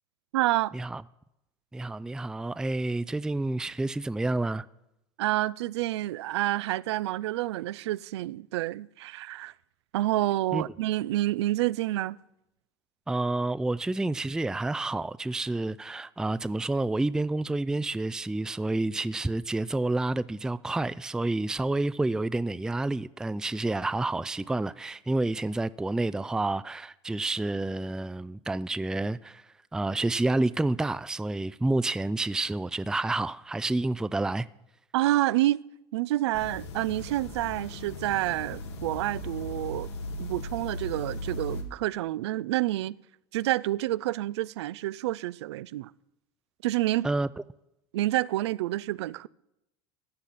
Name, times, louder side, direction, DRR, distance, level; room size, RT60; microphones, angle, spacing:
voice 1, 0.3-0.7 5.2-9.5 9.9-12.2 34.9-35.6 35.9-39.9 40.2-43.0 43.3-45.9 46.6-47.1 47.9-49.3, right 15 dB, 85° right, 0.4 m, -28 dB
voice 2, 1.7-4.7 10.5-10.7 13.1-29.4 29.7-34.5 47.0-47.4, right 2 dB, 5° right, 0.4 m, -29 dB
sound 1, 36.3-41.6, left 1 dB, 85° left, 1.9 m, -38 dB
14.0 x 10.0 x 4.1 m
hypercardioid pair, 90°, 14 cm